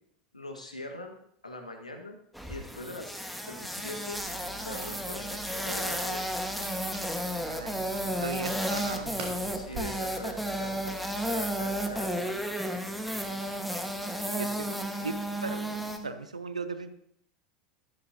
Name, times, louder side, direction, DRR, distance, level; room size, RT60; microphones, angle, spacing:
voice 1, 0.3-1.2 1.4-2.2 2.5-4.2 4.6-6.3 9.5-12.7, left 1 dB, 90° left, 3 dB, 1.6 m, -42 dB
sound 1, 2.3-16.0, equal, ahead, 1.5 m, -33 dB
Crackle, 4.1-12.1, right 6 dB, 55° right, 3.7 m, -46 dB
voice 2, 7.4-9.2 14.3-15.1 15.4-16.9, right 4 dB, 85° right, 11 dB, 0.9 m, -38 dB
14.0 x 12.5 x 2.8 m, 0.69 s
figure-of-eight pair, 80°, 4 cm